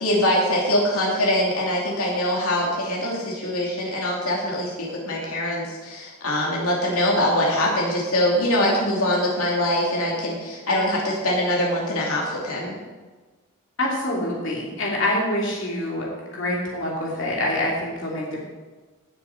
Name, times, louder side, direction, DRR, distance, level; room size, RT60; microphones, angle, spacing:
voice 1, 0.0-12.8, left 1 dB, 80° left, -3 dB, 2.7 m, -23 dB
voice 2, 13.8-16.1 16.3-18.4, left 1 dB, 55° left, -3 dB, 2.8 m, -25 dB
17.5 x 6.9 x 4.5 m, 1.3 s
head